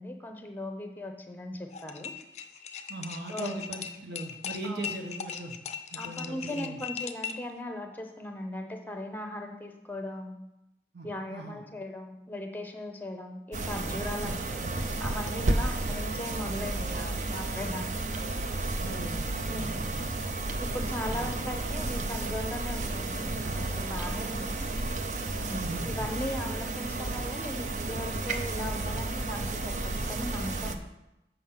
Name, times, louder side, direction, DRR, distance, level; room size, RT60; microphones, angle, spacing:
voice 1, 0.0-2.1 3.3-3.6 4.6-4.8 6.0-10.4 11.0-18.1 19.5-19.9 20.6-24.7 25.4-29.8 30.1-30.8, left 1 dB, 10° left, 4 dB, 0.8 m, -38 dB
sound 1, 1.7-7.5, left 7 dB, 40° left, 0.5 m, -39 dB
voice 2, 2.9-5.5 5.9-6.8 10.9-11.6 14.2-14.3 18.8-20.1 21.1-21.3 25.5-26.1, right 2 dB, 70° right, 1 dB, 1.3 m, -39 dB
sound 2, 13.5-30.8, right 2 dB, 45° right, 0.5 m, -32 dB
7.3 x 5.7 x 5.7 m, 0.92 s
head